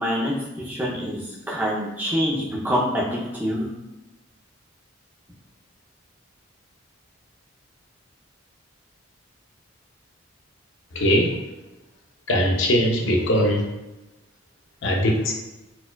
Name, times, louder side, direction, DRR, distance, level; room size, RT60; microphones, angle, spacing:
voice 1, 0.0-3.7, equal, 10° right, -4 dB, 0.5 m, -26 dB
voice 2, 10.9-11.4 12.3-13.7 14.8-15.3, equal, 65° left, 1 dB, 0.5 m, -20 dB
4.2 x 2.3 x 2.2 m, 0.98 s
head